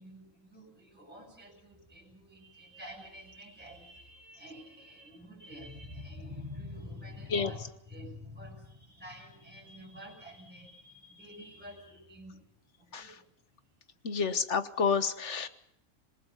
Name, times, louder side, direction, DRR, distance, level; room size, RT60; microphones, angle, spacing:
voice 1, 0.0-13.3 14.0-14.4, left 1 dB, 5° right, -2 dB, 7.6 m, -48 dB
voice 2, 14.0-15.5, left 5 dB, 60° left, 11 dB, 1.6 m, -29 dB
27.0 x 21.0 x 5.4 m, 0.74 s
omnidirectional pair, 1.4 m